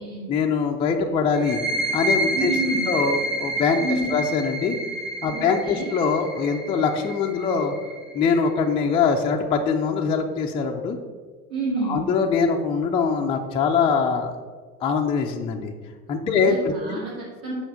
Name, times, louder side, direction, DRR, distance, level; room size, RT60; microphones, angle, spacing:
voice 1, 0.3-1.6 1.9-2.5 2.9-3.8 4.1-4.8 5.2-7.7 8.1-11.0 11.9-14.3 14.8-15.7 16.1-17.0, left 5 dB, 15° left, 1 dB, 0.4 m, -23 dB
sound 1, 1.3-8.7, right 1 dB, ahead, 1.0 m, -29 dB
voice 2, 2.3-2.9 3.8-4.1 5.3-5.9 11.5-12.1 16.2-17.5, right 2 dB, 50° right, -5 dB, 2.4 m, -29 dB
6.9 x 5.5 x 4.8 m, 1.5 s
figure-of-eight pair, 75°, 46 cm